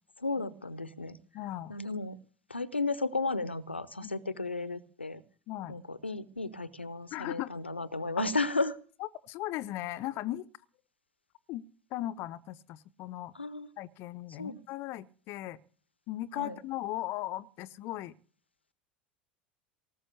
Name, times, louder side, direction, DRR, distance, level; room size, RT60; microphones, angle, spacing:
voice 1, 0.2-1.2 1.7-2.2 2.5-5.2 5.7-8.7 13.3-13.7 14.4-14.6 16.3-16.6, left 3 dB, 85° left, 0.9 m, -33 dB
voice 2, 1.3-1.7 4.0-4.1 5.5-5.8 7.1-7.5 8.2-8.3 9.2-10.5 11.5-11.6 11.9-13.3 13.8-15.6 16.1-18.1, left 14 dB, 45° left, 0.7 m, -37 dB
18.5 x 7.2 x 8.3 m
figure-of-eight pair, 80°, 6 cm